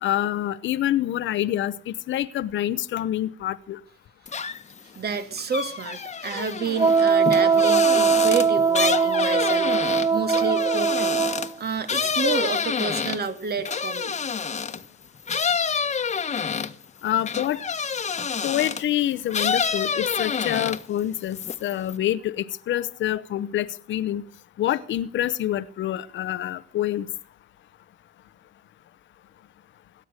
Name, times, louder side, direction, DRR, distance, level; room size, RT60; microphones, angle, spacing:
voice 1, 0.0-3.8 17.0-17.6 18.4-24.2 24.6-27.1, left 12 dB, 70° left, 13 dB, 0.8 m, -26 dB
sound 1, 4.3-4.8 5.1-14.9 15.3-18.9 19.3-21.0 21.3-22.0, left 6 dB, 35° left, 1.3 m, -28 dB
voice 2, 5.0-14.1, right 5 dB, 55° right, 9 dB, 2.6 m, -30 dB
Wind instrument woodwind instrument, 6.8-11.5, right 5 dB, 15° right, 0.8 m, -20 dB
18.0 x 12.0 x 6.4 m, 0.41 s
cardioid pair, 90°, 20 cm